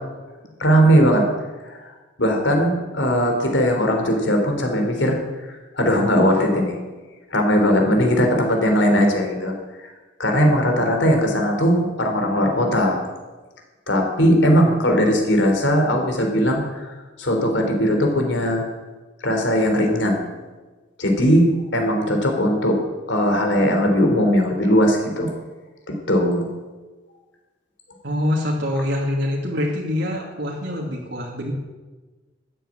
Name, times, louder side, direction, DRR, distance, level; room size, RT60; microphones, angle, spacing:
voice 1, 0.6-1.3 1.6-1.9 2.2-6.8 7.3-9.5 9.8-9.9 10.2-13.0 13.9-18.6 19.2-20.3 21.0-22.8 23.1-25.3 25.9-26.5, equal, 75° left, 3 dB, 3.8 m, -19 dB
voice 2, 28.0-31.5, left 1 dB, 65° right, -2 dB, 2.7 m, -25 dB
13.5 x 10.5 x 9.0 m, 1.3 s
head